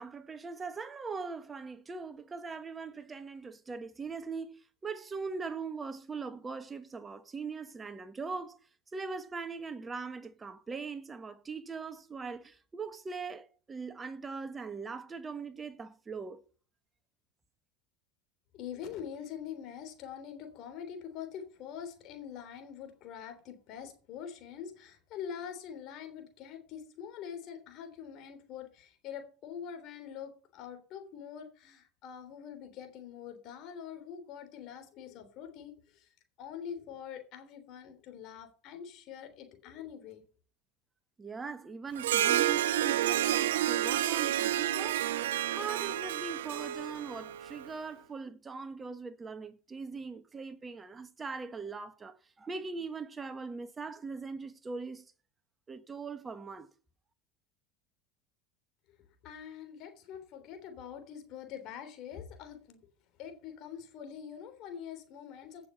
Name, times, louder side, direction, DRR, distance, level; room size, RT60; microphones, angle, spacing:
voice 1, 0.0-8.6 8.9-16.4 41.2-45.3 45.6-55.1 55.7-56.7, right 4 dB, 20° right, 1.5 m, -41 dB
voice 2, 18.5-36.1 36.4-40.2 58.9-59.0 59.2-62.8 63.2-65.7, left 8 dB, 50° left, 3.4 m, -44 dB
Harp, 42.0-47.7, right 12 dB, 70° right, 0.6 m, -30 dB
16.5 x 7.0 x 5.7 m
hypercardioid pair, 80°, 0 cm